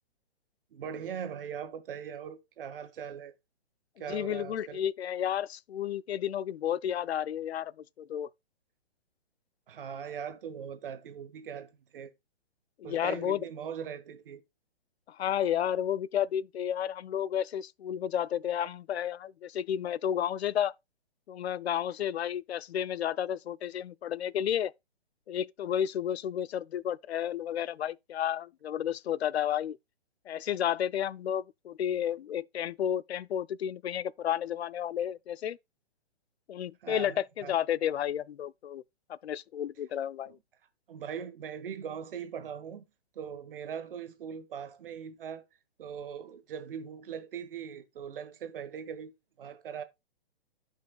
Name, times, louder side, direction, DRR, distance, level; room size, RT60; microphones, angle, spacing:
voice 1, 0.7-3.3 4.0-4.8 9.7-12.1 12.8-14.4 36.8-37.5 40.3-40.4 40.9-42.8 43.1-45.4 45.8-49.1 49.4-49.8, right 7 dB, 60° right, 1.4 m, -40 dB
voice 2, 4.1-7.7 8.0-8.3 12.8-13.4 15.1-20.7 21.3-24.7 25.3-29.8 30.3-35.6 36.5-38.8 39.1-40.4, left 10 dB, 80° left, 0.5 m, -32 dB
13.0 x 5.4 x 2.3 m
hypercardioid pair, 145°, 32 cm